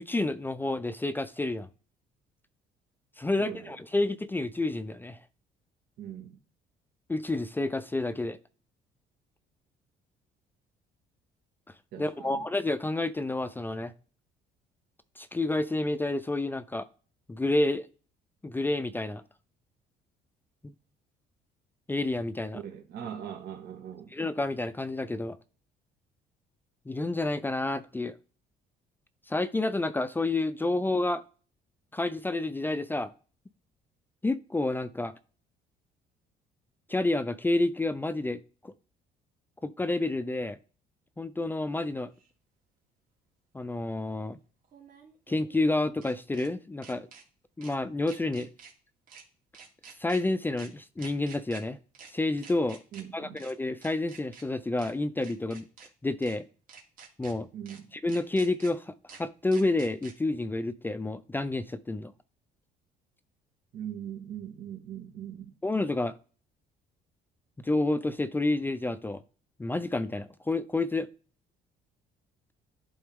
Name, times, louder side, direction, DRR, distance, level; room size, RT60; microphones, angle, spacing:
voice 1, 0.0-1.7 3.2-5.2 7.1-8.4 12.0-13.9 15.2-16.9 17.3-17.9 18.4-19.2 20.6-20.7 21.9-22.6 24.1-25.4 26.9-28.2 29.3-31.2 31.9-33.1 34.2-35.1 36.9-38.7 39.6-40.6 41.2-42.1 43.5-44.4 45.3-47.1 47.6-48.5 50.0-51.8 52.1-52.8 53.1-55.6 56.0-56.5 57.2-57.5 58.0-62.1 65.6-66.1 67.6-69.2 69.6-71.1, left 2 dB, 10° left, 0.4 m, -29 dB
voice 2, 3.4-3.7 6.0-6.4 11.9-12.5 22.5-24.1 52.9-53.4 57.5-57.9 63.7-65.5, right 9 dB, 75° right, 1.6 m, -41 dB
sound 1, 42.2-42.3 44.6-46.5 46.8-47.2 47.6-47.8 48.1-48.7 49.1-49.2 49.5-50.2 50.6-50.7 51.0-51.6 51.9-52.1 52.4-53.0 53.4-53.5 53.8-54.4 54.8-54.9 55.2-55.9 56.2-56.4 56.7-57.3 57.7-57.8 58.1-58.7 59.1-59.2 59.5-60.1, right 6 dB, 55° right, 2.3 m, -49 dB
11.0 x 3.9 x 3.6 m
cardioid pair, 110°, 17 cm